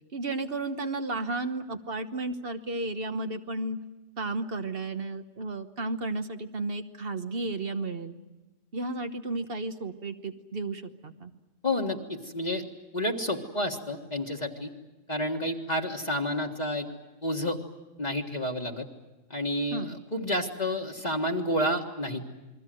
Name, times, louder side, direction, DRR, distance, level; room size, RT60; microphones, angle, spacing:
voice 1, 0.1-3.8 4.2-8.1 8.7-11.3 19.7-20.0, right 2 dB, 50° right, 8 dB, 1.4 m, -33 dB
voice 2, 11.6-12.6 12.9-14.7 15.1-16.9 17.2-17.6 18.0-18.9 19.3-22.3, left 1 dB, 35° left, 1 dB, 1.8 m, -30 dB
29.0 x 22.0 x 7.8 m, 1.1 s
omnidirectional pair, 1.3 m